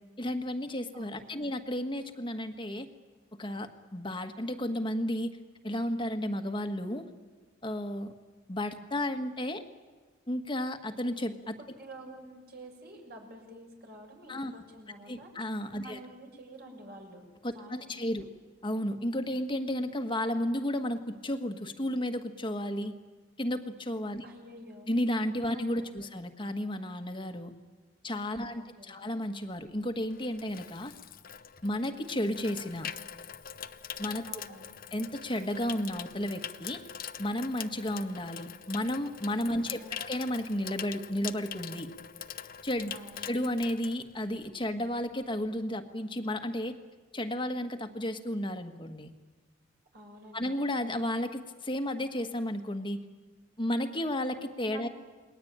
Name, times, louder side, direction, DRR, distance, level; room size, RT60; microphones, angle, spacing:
voice 1, 0.2-2.9 3.4-5.4 5.6-7.1 7.6-8.1 8.5-9.6 10.3-11.6 14.3-14.5 15.1-16.0 17.4-18.2 18.6-23.0 23.4-24.3 24.9-27.5 28.0-30.9 31.6-32.9 34.0-34.3 34.9-36.8 37.2-41.9 42.6-42.9 43.2-46.8 47.1-49.1 50.3-53.0 53.6-54.9, left 1 dB, 25° left, 6 dB, 1.5 m, -33 dB
voice 2, 0.9-1.6 11.8-15.3 15.8-17.3 17.5-18.3 24.2-24.9 25.5-26.1 28.5-29.1 34.2-34.7 39.5-39.9 42.9-43.2 49.9-50.5 54.7-54.9, right 1 dB, 55° right, 2 dB, 6.1 m, -49 dB
Water tap faucet / Sink (filling or washing), 29.7-44.6 44.9-45.2, left 8 dB, 50° left, 0.8 m, -43 dB
29.0 x 21.5 x 8.9 m, 1.3 s
head